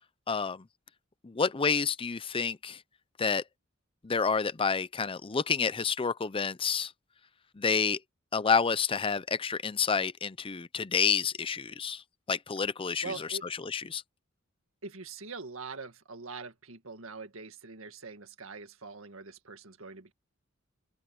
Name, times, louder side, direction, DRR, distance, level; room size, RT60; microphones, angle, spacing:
voice 1, 0.3-0.6 1.2-2.8 3.2-3.4 4.0-6.9 7.6-8.0 8.3-12.0 12.3-13.3 13.6-14.0, left 5 dB, 25° left, 0.6 m, -29 dB
voice 2, 13.0-13.5 14.8-20.1, right 4 dB, 80° right, 1.9 m, -43 dB
open air
head